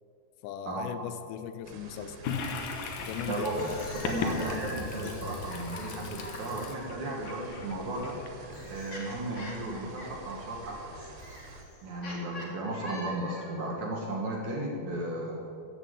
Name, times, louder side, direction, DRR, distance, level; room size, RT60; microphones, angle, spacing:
voice 1, 0.4-2.2 3.0-3.5, left 9 dB, 85° left, 11 dB, 2.9 m, -38 dB
sound 1, 1.6-11.6, right 2 dB, 80° right, 3.7 m, -47 dB
Toilet flush, 2.2-8.8, left 5 dB, 70° left, 2.6 m, -38 dB
voice 2, 3.2-3.7 3.9-8.2 8.7-10.9 11.8-15.4, right 1 dB, 60° right, -1 dB, 2.2 m, -35 dB
sound 2, 3.4-6.7 7.7-13.6, left 1 dB, 40° left, 1.1 m, -45 dB
14.0 x 8.3 x 8.0 m, 2.6 s
omnidirectional pair, 4.8 m